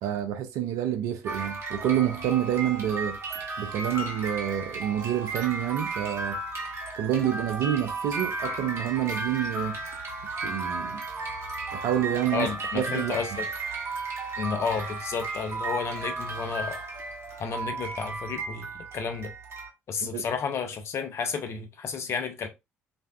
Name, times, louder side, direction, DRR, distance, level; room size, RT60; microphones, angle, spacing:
voice 1, 0.0-3.2 3.6-6.4 7.0-9.8 10.4-11.0 11.7-12.5 12.7-13.2 20.0-20.3, right 11 dB, 55° right, 0.5 m, -28 dB
sound 1, 1.2-19.7, right 3 dB, 40° right, 1.0 m, -34 dB
voice 2, 12.3-13.5 14.4-16.8 17.4-19.3 19.9-22.5, left 6 dB, 40° left, 0.6 m, -31 dB
3.3 x 2.5 x 2.2 m
figure-of-eight pair, 50°, 7 cm